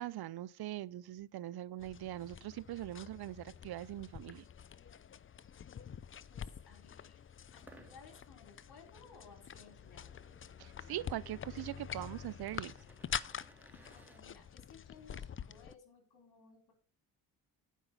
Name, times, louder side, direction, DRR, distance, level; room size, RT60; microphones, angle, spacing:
voice 1, 0.0-4.5 10.6-12.7, right 14 dB, 60° right, 0.6 m, -42 dB
sound 1, 1.8-15.8, left 8 dB, 30° left, 0.5 m, -46 dB
voice 2, 6.3-7.2 7.5-10.1 13.7-16.7, left 5 dB, 60° left, 3.7 m, -59 dB
sound 2, 7.6-14.2, right 2 dB, 5° right, 2.3 m, -63 dB
9.1 x 5.5 x 6.3 m
supercardioid pair, 65°, 42 cm